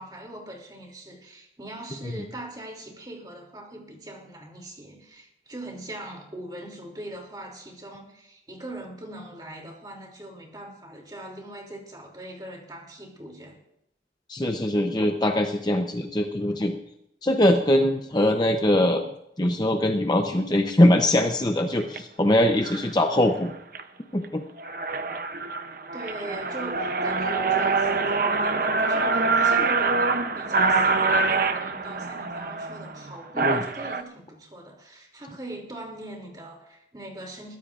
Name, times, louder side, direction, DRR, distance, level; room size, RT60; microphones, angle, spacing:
voice 1, 0.0-13.6 25.9-37.6, right 1 dB, 25° right, 1 dB, 2.9 m, -41 dB
voice 2, 14.3-16.8 17.2-23.5 24.1-24.4 33.4-33.6, left 1 dB, 25° left, 4 dB, 0.7 m, -22 dB
sound 1, 21.8-22.0 22.6-22.9 23.4-23.8 24.2-24.3 24.6-34.0, right 3 dB, 50° right, 0.7 m, -25 dB
21.5 x 15.0 x 2.5 m, 0.80 s
head